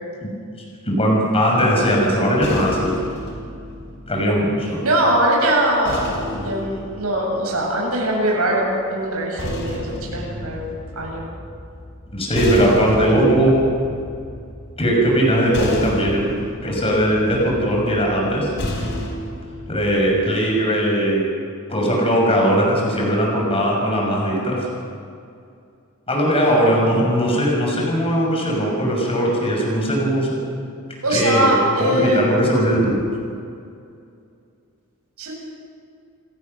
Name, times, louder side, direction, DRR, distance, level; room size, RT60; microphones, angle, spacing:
voice 1, 0.9-2.9 4.1-4.8 12.1-13.6 14.8-16.4 16.6-18.5 19.7-21.3 21.7-24.6 26.1-30.4 31.1-32.9, equal, 25° left, -2 dB, 6.1 m, -19 dB
voice 2, 2.2-2.7 4.8-10.7 11.0-11.3 12.6-13.2 26.8-26.9 31.0-32.6 35.2-35.3, right 1 dB, 80° right, -2 dB, 7.9 m, -22 dB
sound 1, 2.4-4.9 5.8-8.1 9.1-20.1, left 1 dB, 55° left, 4.6 m, -32 dB
28.0 x 18.0 x 6.7 m, 2.4 s
head